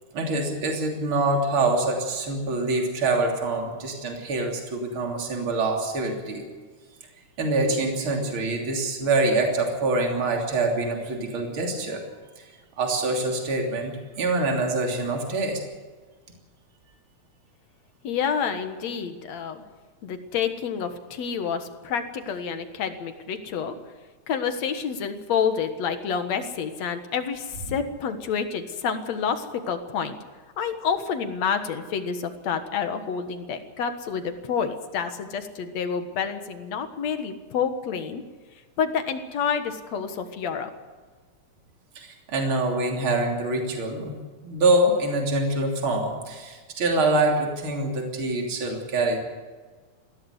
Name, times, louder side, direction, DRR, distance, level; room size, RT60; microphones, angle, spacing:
voice 1, 0.1-6.4 7.4-12.0 12.4-12.5 12.8-15.6 42.0-44.2 44.4-49.2, right 2 dB, 40° right, 2 dB, 3.8 m, -25 dB
voice 2, 18.0-19.6 20.0-23.8 24.3-30.2 30.6-38.2 38.8-40.7, left 6 dB, 65° left, 8 dB, 2.6 m, -28 dB
20.5 x 16.0 x 8.1 m, 1.4 s
omnidirectional pair, 3.5 m